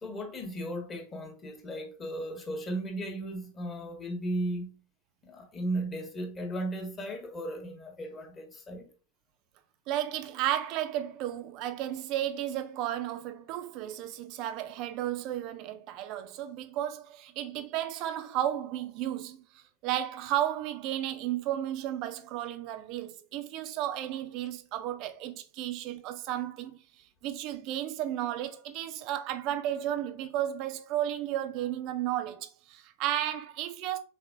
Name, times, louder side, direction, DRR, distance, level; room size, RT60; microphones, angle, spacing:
voice 1, 0.0-4.8 5.2-8.9, right 1 dB, 20° left, 1.0 m, -36 dB
voice 2, 9.9-19.4 19.8-26.8 27.2-34.0, right 12 dB, 40° right, 0.4 m, -33 dB
4.1 x 3.2 x 2.5 m
figure-of-eight pair, 90°, 0 cm